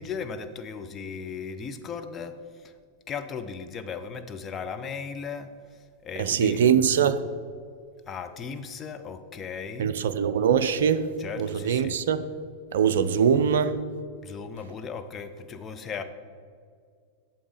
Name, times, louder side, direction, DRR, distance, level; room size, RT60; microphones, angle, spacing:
voice 1, 0.0-2.4 3.1-5.5 6.0-6.6 8.1-9.9 11.2-12.0 14.2-16.0, left 6 dB, 25° left, 0.7 m, -36 dB
voice 2, 6.2-7.2 9.8-11.1 11.4-12.3 12.7-13.8, right 7 dB, 60° right, 0.5 m, -22 dB
8.7 x 7.0 x 5.0 m
figure-of-eight pair, 90°, 0 cm